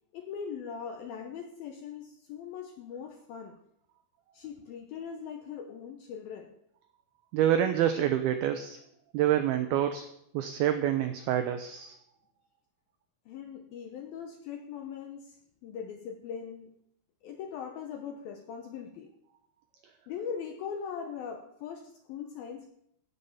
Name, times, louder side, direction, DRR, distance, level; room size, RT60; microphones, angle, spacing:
voice 1, 0.1-3.6 4.3-6.5 13.3-15.4 15.6-16.8 17.2-19.1 20.1-22.7, left 7 dB, 80° left, 5 dB, 2.2 m, -40 dB
voice 2, 7.3-8.8 9.1-10.1 10.3-11.9, right 10 dB, 85° right, 8 dB, 2.1 m, -27 dB
16.0 x 5.6 x 7.1 m, 0.74 s
omnidirectional pair, 5.3 m